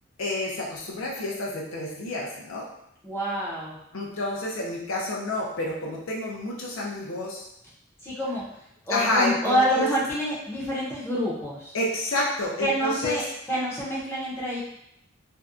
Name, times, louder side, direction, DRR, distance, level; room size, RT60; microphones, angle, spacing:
voice 1, 0.2-2.7 3.9-7.5 8.9-9.9 11.7-13.2, left 1 dB, 75° left, -2 dB, 0.6 m, -29 dB
voice 2, 3.0-3.8 8.0-8.5 8.9-11.8 12.6-13.2 13.5-14.6, equal, 10° left, -7 dB, 0.6 m, -27 dB
2.6 x 2.2 x 2.4 m, 0.79 s
head